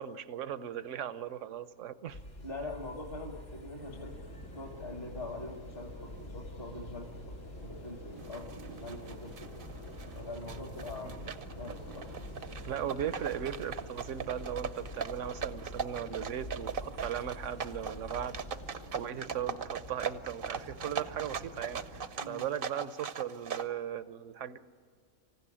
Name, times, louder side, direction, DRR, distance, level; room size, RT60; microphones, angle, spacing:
voice 1, 0.0-2.2 11.0-11.3 12.7-18.3 18.9-24.6, right 9 dB, 70° right, 14 dB, 1.1 m, -38 dB
sound 1, 2.1-18.7, left 1 dB, 70° left, 2.7 m, -47 dB
voice 2, 2.4-4.2 4.5-7.1 7.5-9.5 10.2-11.3 11.6-12.1 22.2-22.5, left 2 dB, 45° left, 2 dB, 1.8 m, -43 dB
sound 2, 3.8-22.1, equal, 85° left, 3.0 m, -50 dB
sound 3, 8.2-23.7, right 6 dB, 50° right, 0.8 m, -40 dB
25.5 x 15.5 x 10.0 m, 2.3 s
omnidirectional pair, 1.3 m